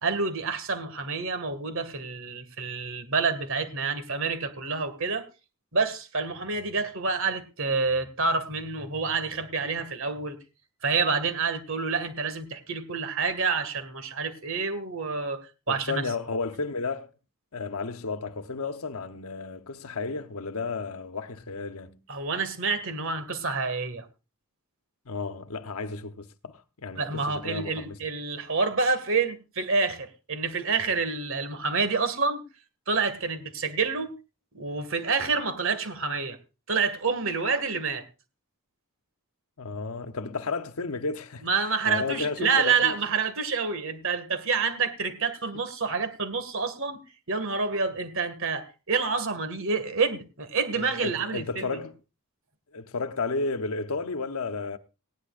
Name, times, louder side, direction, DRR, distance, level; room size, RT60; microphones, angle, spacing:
voice 1, 0.0-5.2 5.7-10.4 10.8-16.0 22.1-24.1 27.0-32.4 32.9-34.1 34.5-36.4 36.7-38.0 41.4-47.0 47.3-51.8, right 4 dB, 60° right, 2.1 m, -28 dB
voice 2, 15.7-17.1 17.5-22.0 25.0-28.0 39.6-41.5 41.8-43.0 50.7-51.9 52.7-54.8, left 4 dB, 75° left, 1.0 m, -33 dB
19.0 x 16.0 x 2.5 m
head